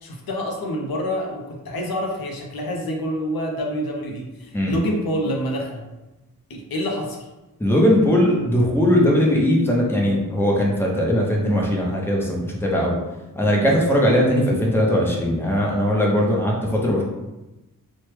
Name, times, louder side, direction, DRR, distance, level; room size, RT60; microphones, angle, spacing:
voice 1, 0.0-5.8 6.5-7.3, equal, 80° left, 0 dB, 0.6 m, -27 dB
voice 2, 7.6-12.9 13.4-17.0, equal, 5° left, -2 dB, 0.6 m, -19 dB
3.1 x 2.1 x 3.2 m, 1.0 s
wide cardioid pair, 80°, 36 cm